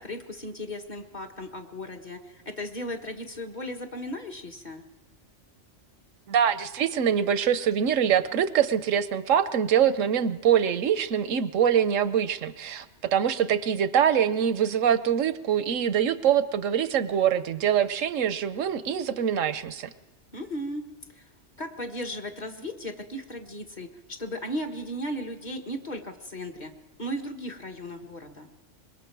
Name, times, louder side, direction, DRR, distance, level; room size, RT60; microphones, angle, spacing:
voice 1, 0.0-4.8 20.3-20.8 21.2-21.3 21.6-26.7 27.0-28.5, equal, 35° left, 2 dB, 1.6 m, -36 dB
voice 2, 6.3-19.9, right 8 dB, 85° right, 13 dB, 1.2 m, -24 dB
25.5 x 22.0 x 4.7 m, 1.2 s
omnidirectional pair, 1.3 m